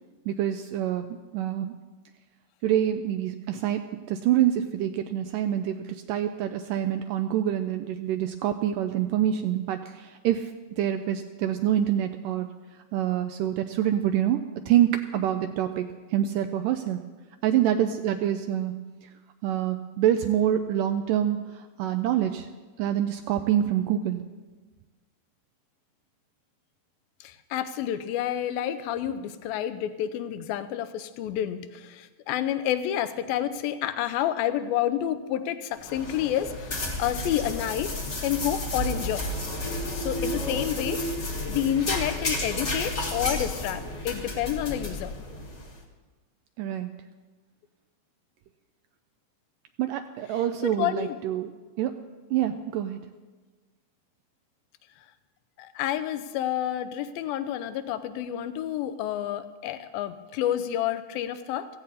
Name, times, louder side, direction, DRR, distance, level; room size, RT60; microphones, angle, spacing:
voice 1, 0.3-1.1 1.3-1.8 2.6-12.5 12.9-17.0 17.4-18.8 19.4-22.5 22.8-24.2 46.6-46.9 49.8-51.9 52.3-53.0, right 11 dB, 80° right, 7 dB, 2.0 m, -26 dB
voice 2, 27.2-39.3 39.9-41.0 41.5-45.1 50.6-51.2 55.6-61.7, left 11 dB, 85° left, 11 dB, 2.5 m, -29 dB
sound 1, 35.8-45.8, left 1 dB, 50° left, 0.8 m, -32 dB
16.5 x 15.0 x 4.2 m, 1.3 s
omnidirectional pair, 4.2 m